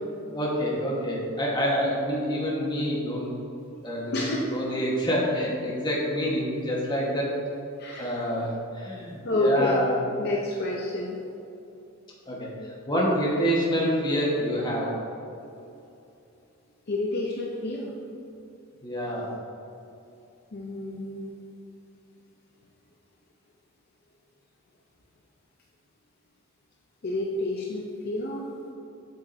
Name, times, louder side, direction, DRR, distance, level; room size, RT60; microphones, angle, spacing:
voice 1, 0.3-3.3 3.8-7.3 8.0-9.9 12.2-14.9 18.8-19.3, equal, 20° left, -4 dB, 1.2 m, -27 dB
voice 2, 4.1-4.6 7.8-8.3 9.2-9.8 10.2-11.2 16.9-18.0 20.5-21.3 27.0-28.5, left 1 dB, 45° left, -2 dB, 0.5 m, -29 dB
7.2 x 7.2 x 2.6 m, 2.7 s
head